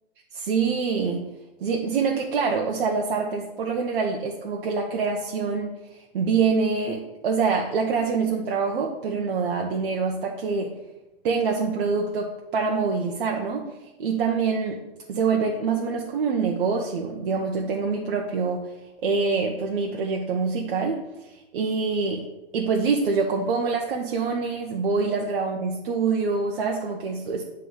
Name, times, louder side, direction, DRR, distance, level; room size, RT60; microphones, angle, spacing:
voice 1, 0.3-1.3 1.6-10.7 11.2-13.7 14.0-14.8 15.1-18.7 19.0-22.3 22.5-27.4, right 5 dB, 65° right, 1 dB, 0.8 m, -25 dB
7.7 x 3.2 x 3.9 m, 1.0 s
hypercardioid pair, 115°, 30 cm